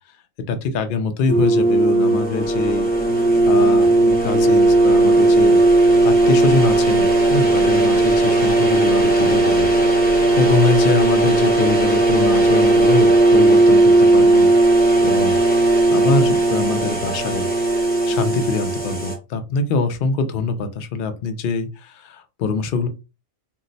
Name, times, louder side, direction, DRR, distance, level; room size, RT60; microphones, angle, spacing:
voice 1, 0.5-15.4 15.9-17.5 17.8-22.9, left 4 dB, 70° left, 8 dB, 0.5 m, -24 dB
sound 1, 1.3-19.1, right 2 dB, 10° left, 0.4 m, -16 dB
2.6 x 2.1 x 3.8 m, 0.29 s
omnidirectional pair, 1.5 m